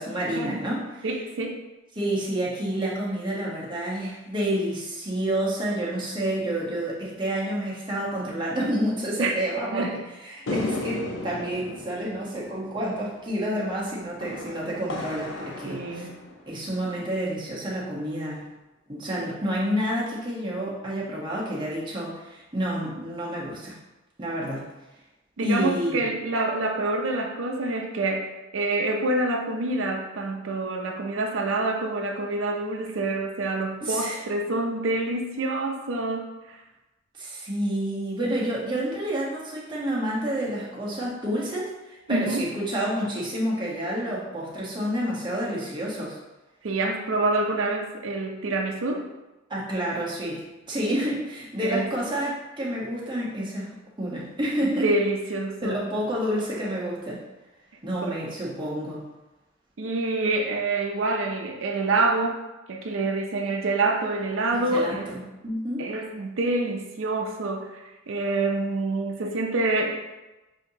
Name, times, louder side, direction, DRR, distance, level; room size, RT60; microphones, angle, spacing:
voice 1, 0.0-0.9 2.0-16.1 16.5-18.5 18.9-23.8 24.2-24.6 25.4-26.0 33.8-34.2 37.2-46.2 49.5-53.7 54.0-54.9 55.6-57.2 57.8-59.1 64.5-65.9, right 1 dB, 25° right, -5 dB, 1.0 m, -29 dB
voice 2, 1.0-1.6 9.2-9.3 9.7-10.0 15.7-16.2 25.4-36.6 42.1-42.5 46.6-49.1 51.6-51.9 54.8-55.8 58.0-58.2 59.8-65.1 65.8-69.9, right 2 dB, 80° right, 2 dB, 0.5 m, -27 dB
sound 1, 10.5-17.0, left 2 dB, 70° left, 0.6 m, -36 dB
6.2 x 2.8 x 2.7 m, 1.0 s
head